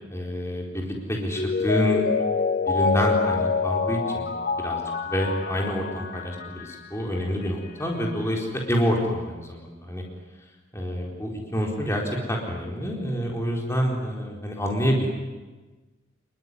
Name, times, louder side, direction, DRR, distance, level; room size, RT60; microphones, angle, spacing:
voice 1, 0.1-2.0 2.7-4.3 4.6-10.0 10.7-15.1, equal, 15° left, -1 dB, 4.2 m, -27 dB
Mallet percussion, 1.4-6.9 7.2-7.3, left 5 dB, 45° left, 1.3 m, -26 dB
29.0 x 21.0 x 9.8 m, 1.2 s
head